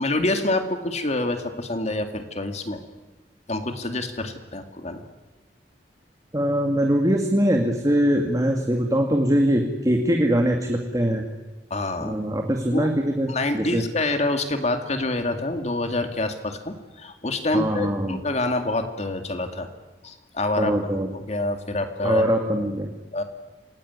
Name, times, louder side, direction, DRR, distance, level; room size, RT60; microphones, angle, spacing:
voice 1, 0.0-2.8 3.5-5.0 11.7-12.1 12.7-12.9 13.3-19.7 20.0-20.8 21.1-22.3 23.1-23.2, left 2 dB, 40° left, 7 dB, 2.3 m, -27 dB
voice 2, 6.3-11.2 12.0-13.3 13.5-13.8 17.5-18.2 20.6-21.1 22.0-22.9, equal, 20° right, 2 dB, 2.2 m, -22 dB
27.5 x 19.5 x 9.7 m, 1.2 s
head